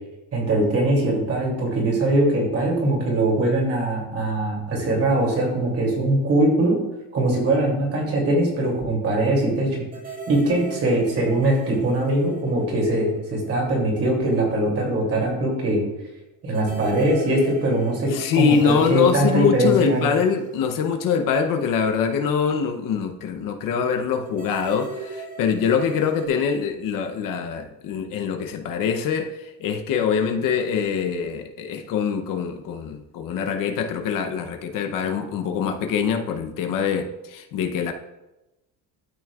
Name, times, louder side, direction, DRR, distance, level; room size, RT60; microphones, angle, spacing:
voice 1, 0.3-6.8 7.1-9.8 10.3-15.8 16.4-20.1, right 1 dB, 40° right, -2 dB, 2.9 m, -21 dB
sound 1, 9.9-13.7 13.9-14.0 16.5-21.9 24.3-26.3, right 3 dB, 20° right, 1.1 m, -38 dB
voice 2, 18.1-37.9, left 6 dB, 60° left, 5 dB, 0.8 m, -24 dB
12.5 x 6.2 x 2.4 m, 0.98 s
cardioid pair, 145°, 36 cm